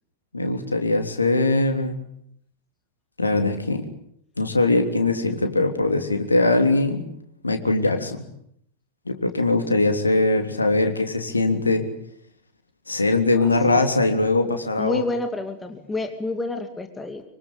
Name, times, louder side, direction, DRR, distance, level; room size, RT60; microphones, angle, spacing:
voice 1, 0.3-2.0 3.2-3.8 4.4-7.0 7.4-8.3 9.0-11.9 12.9-15.0, left 2 dB, 80° left, 6 dB, 3.3 m, -21 dB
voice 2, 13.3-13.8 14.8-17.2, left 2 dB, 15° left, 6 dB, 2.5 m, -29 dB
25.0 x 25.0 x 8.4 m, 0.70 s
figure-of-eight pair, 90°, 0 cm